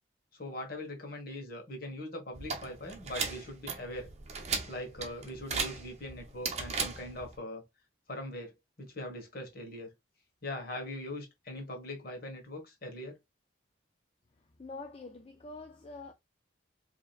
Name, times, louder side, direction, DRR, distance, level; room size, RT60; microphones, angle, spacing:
voice 1, 0.3-4.1 4.7-7.6 8.1-8.5 8.8-9.9 10.4-13.2, left 1 dB, 50° left, 1.4 m, -41 dB
sound 1, 2.3-7.4, right 5 dB, 35° right, 0.8 m, -37 dB
voice 2, 14.6-16.1, left 3 dB, 30° left, 0.4 m, -45 dB
4.9 x 2.9 x 2.4 m
head